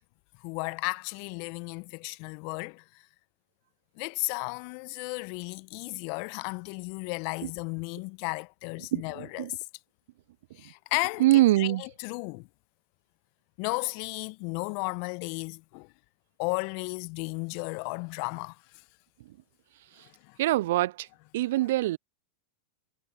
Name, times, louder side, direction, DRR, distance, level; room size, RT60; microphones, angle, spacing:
voice 1, 0.4-2.8 4.0-9.5 10.6-12.5 13.6-15.9 16.4-18.6 20.0-20.4, left 33 dB, 50° left, 1.2 m, -34 dB
voice 2, 8.9-9.5 11.2-11.8 20.4-21.1 21.3-22.0, right 16 dB, 60° right, 0.5 m, -24 dB
figure-of-eight pair, 95°, 0 cm